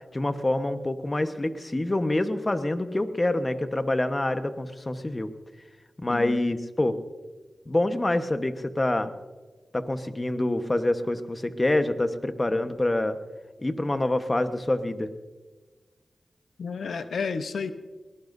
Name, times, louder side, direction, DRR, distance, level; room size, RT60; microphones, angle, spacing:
voice 1, 0.1-5.3 6.0-7.0 7.7-9.1 9.7-13.2 13.6-15.1, left 1 dB, 30° left, 9 dB, 1.2 m, -26 dB
voice 2, 6.1-6.4 16.6-17.7, left 5 dB, 85° left, 10 dB, 0.9 m, -31 dB
21.5 x 18.5 x 2.7 m, 1.3 s
cardioid pair, 50°, 0 cm